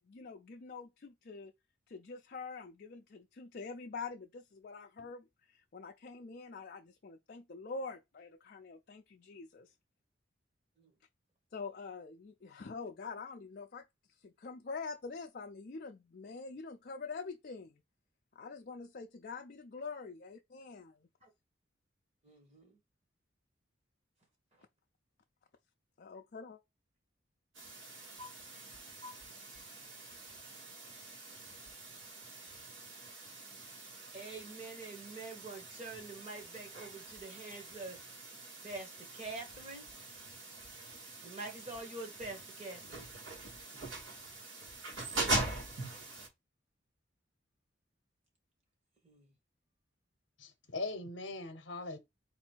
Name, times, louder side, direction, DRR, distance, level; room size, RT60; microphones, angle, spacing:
voice 1, 0.0-1.5 1.9-9.7 11.5-13.9 14.2-17.8 18.4-21.1 26.0-26.6, left 4 dB, 50° left, 0.4 m, -45 dB
voice 2, 22.2-22.8 34.1-38.0 38.6-39.9 41.2-43.1 49.0-49.3, right 3 dB, 35° right, 1.6 m, -46 dB
sound 1, 27.5-46.3, right 2 dB, 80° right, 2.1 m, -43 dB
voice 3, 50.4-52.0, left 3 dB, 65° left, 0.8 m, -40 dB
4.1 x 2.7 x 4.4 m
head